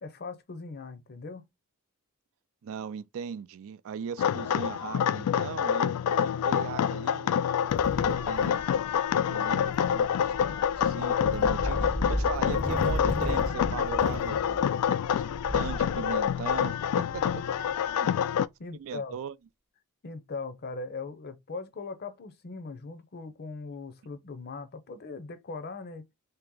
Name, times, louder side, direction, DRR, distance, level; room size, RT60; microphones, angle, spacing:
voice 1, 0.0-1.4 7.9-8.2 18.0-19.2 20.0-26.1, left 4 dB, 45° left, 0.6 m, -40 dB
voice 2, 2.6-7.4 8.0-8.6 9.1-10.3 10.8-15.2 15.5-17.4 18.0-18.2 18.7-19.4, right 7 dB, 65° right, 0.4 m, -39 dB
sound 1, 4.2-18.5, left 8 dB, 85° left, 0.3 m, -27 dB
sound 2, 7.7-17.9, equal, 5° left, 0.4 m, -36 dB
3.3 x 2.9 x 3.6 m
head